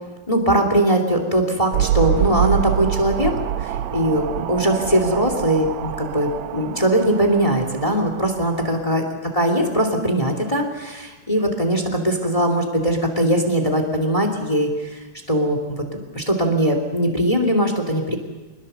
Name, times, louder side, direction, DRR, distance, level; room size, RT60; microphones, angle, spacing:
voice 1, 0.3-3.3 3.6-9.0 9.3-18.2, right 1 dB, 10° left, 5 dB, 2.1 m, -21 dB
sound 1, 1.7-8.9, right 10 dB, 70° right, 1.9 m, -26 dB
26.0 x 20.5 x 6.8 m, 1.3 s
omnidirectional pair, 3.6 m